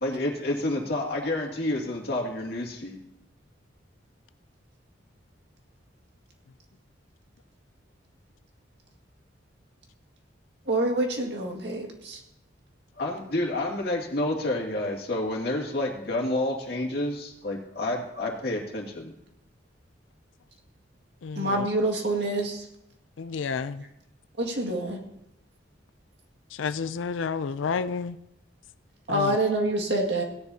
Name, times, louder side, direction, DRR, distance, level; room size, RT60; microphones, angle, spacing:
voice 1, 0.0-3.0 13.0-19.1, left 1 dB, 55° left, 0 dB, 2.3 m, -29 dB
voice 2, 10.7-12.2 21.4-22.6 24.4-25.0 29.1-30.2, right 1 dB, 60° right, 1 dB, 2.1 m, -26 dB
voice 3, 21.2-21.7 23.2-23.8 26.5-28.2 29.1-29.4, left 5 dB, 85° left, 13 dB, 0.4 m, -30 dB
17.5 x 10.5 x 2.8 m, 0.85 s
head